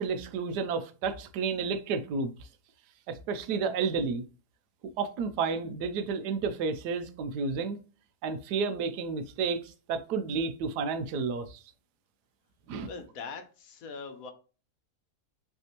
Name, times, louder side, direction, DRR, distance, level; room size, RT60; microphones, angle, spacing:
voice 1, 0.0-2.5 3.1-4.2 5.0-7.8 8.2-11.6 12.7-12.9, right 5 dB, 90° right, 1.2 m, -31 dB
voice 2, 12.8-14.3, left 5 dB, 65° left, 1.1 m, -42 dB
5.4 x 3.4 x 2.9 m
omnidirectional pair, 1.7 m